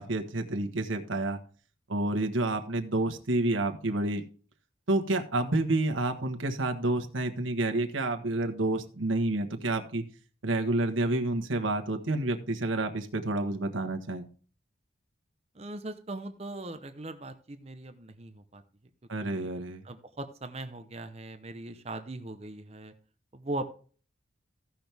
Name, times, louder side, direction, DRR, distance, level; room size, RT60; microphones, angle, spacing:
voice 1, 0.0-1.4 1.9-4.2 4.9-10.0 10.4-14.2 19.1-19.8, right 2 dB, 85° right, 5 dB, 1.4 m, -29 dB
voice 2, 15.6-18.6 19.3-19.5 19.8-22.9 23.3-23.7, right 2 dB, 30° right, 8 dB, 0.7 m, -39 dB
15.5 x 6.1 x 3.4 m, 0.40 s
head